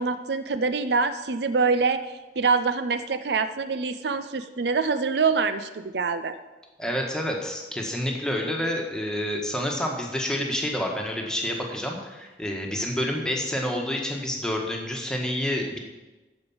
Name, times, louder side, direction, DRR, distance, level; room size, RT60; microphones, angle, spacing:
voice 1, 0.0-6.3, right 4 dB, 70° right, 11 dB, 0.5 m, -25 dB
voice 2, 6.8-15.8, left 1 dB, 5° left, 0 dB, 1.4 m, -28 dB
13.0 x 5.2 x 7.1 m, 1.1 s
head